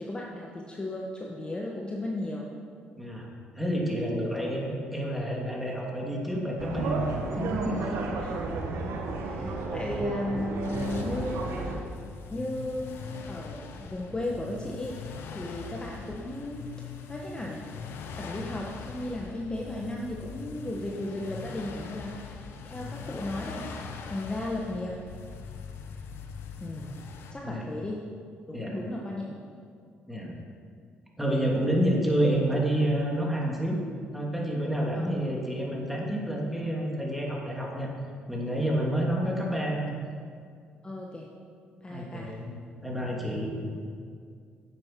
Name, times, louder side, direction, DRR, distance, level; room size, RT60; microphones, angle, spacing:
voice 1, 0.0-2.5 8.2-8.5 9.2-11.8 12.3-16.7 17.1-17.6 18.1-22.4 22.6-23.7 24.1-25.0 26.6-27.0 27.3-28.1 28.5-29.4 34.9-35.1 38.9-39.0 40.8-41.3 41.8-42.3, left 1 dB, 20° left, -2 dB, 1.4 m, -35 dB
voice 2, 3.0-3.3 3.5-7.0 7.4-8.1 27.4-27.7 28.5-28.7 30.1-30.3 31.2-33.8 34.1-37.9 38.3-39.9 41.9-43.7, right 1 dB, 5° right, -2 dB, 2.8 m, -29 dB
sound 1, 6.6-11.8, right 3 dB, 70° right, 1.5 m, -32 dB
sound 2, 10.6-27.3, left 5 dB, 65° left, 1.0 m, -42 dB
9.8 x 7.8 x 6.0 m, 2.2 s
supercardioid pair, 65°, 4 cm